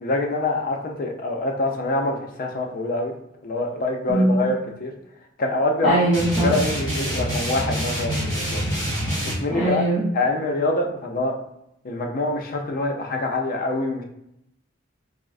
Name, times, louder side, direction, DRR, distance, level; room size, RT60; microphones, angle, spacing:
voice 1, 0.0-3.1 3.4-4.9 5.4-6.0 6.4-8.6 9.4-9.8 10.1-11.4 11.8-14.0, left 2 dB, 45° left, 2 dB, 0.4 m, -25 dB
voice 2, 4.1-4.5 5.8-6.5 9.5-10.1, right 2 dB, ahead, -11 dB, 0.6 m, -21 dB
sound 1, 6.1-9.4, equal, 20° left, 1.2 m, -26 dB
3.6 x 2.0 x 2.4 m, 0.79 s
head